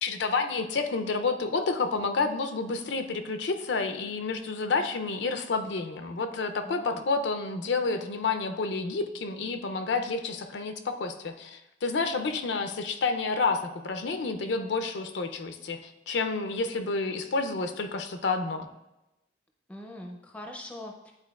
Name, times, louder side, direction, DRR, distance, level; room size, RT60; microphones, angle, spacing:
voice 1, 0.0-18.7, left 4 dB, 75° left, 7 dB, 0.5 m, -29 dB
voice 2, 6.6-7.0 19.7-21.1, left 1 dB, 5° left, 1 dB, 0.5 m, -42 dB
9.7 x 4.3 x 2.3 m, 0.96 s
head